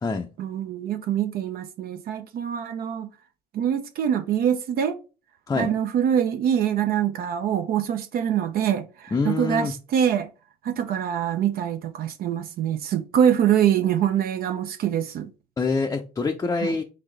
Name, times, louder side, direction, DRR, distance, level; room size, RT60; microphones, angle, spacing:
voice 1, 0.4-3.1 3.5-5.0 5.6-10.3 10.6-15.3 16.6-16.7, right 9 dB, 60° right, 0.5 m, -24 dB
voice 2, 9.1-9.7 15.6-16.8, left 4 dB, 20° left, 0.5 m, -25 dB
4.0 x 3.9 x 3.3 m
cardioid pair, 110°, 17 cm